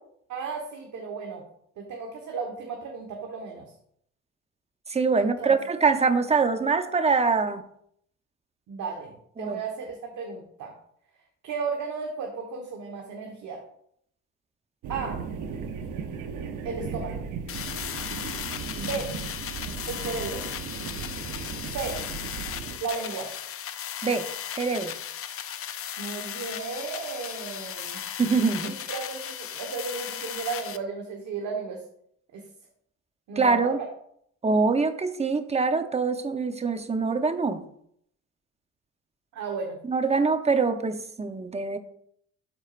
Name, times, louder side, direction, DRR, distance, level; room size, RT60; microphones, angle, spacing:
voice 1, 0.3-1.4 1.8-3.7 5.2-5.5 8.7-10.7 11.4-13.6 14.9-15.2 16.6-17.2 18.8-19.1 19.9-20.4 21.6-22.0 22.8-23.3 26.0-28.0 28.6-31.8 32.3-32.4 33.3-33.9 39.3-39.8, right 4 dB, 70° right, 1 dB, 1.3 m, -34 dB
voice 2, 4.9-7.6 9.4-9.6 24.0-24.2 24.5-24.9 28.2-28.7 33.4-33.8 34.4-37.6 39.9-41.8, right 4 dB, 20° right, 8 dB, 0.8 m, -24 dB
sound 1, 14.8-22.8, right 6 dB, 85° right, 0.8 m, -36 dB
sound 2, 17.5-30.8, left 9 dB, 50° left, 0.6 m, -36 dB
12.5 x 4.5 x 2.5 m, 0.68 s
cardioid pair, 90°, 30 cm